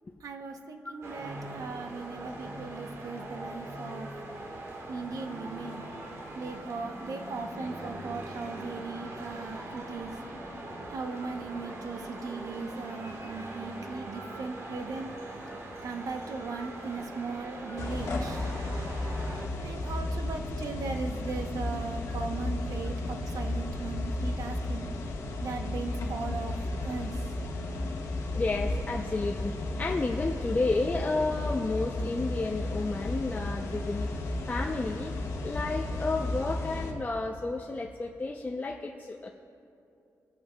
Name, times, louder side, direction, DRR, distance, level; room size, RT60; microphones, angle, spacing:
voice 1, 0.2-4.1 4.9-5.9 6.3-10.1 10.9-15.1 15.8-18.5 19.6-24.9 25.4-27.2, right 4 dB, 70° right, 5 dB, 0.8 m, -38 dB
sound 1, 1.0-19.5, right 1 dB, 55° right, 1.4 m, -41 dB
sound 2, 17.8-36.9, left 2 dB, 75° left, 1.3 m, -33 dB
voice 2, 28.3-29.5 29.8-34.1 34.5-35.1 35.4-39.3, left 3 dB, 25° left, 1 dB, 0.5 m, -31 dB
22.5 x 8.4 x 2.2 m, 2.6 s
cardioid pair, 100°, 6 cm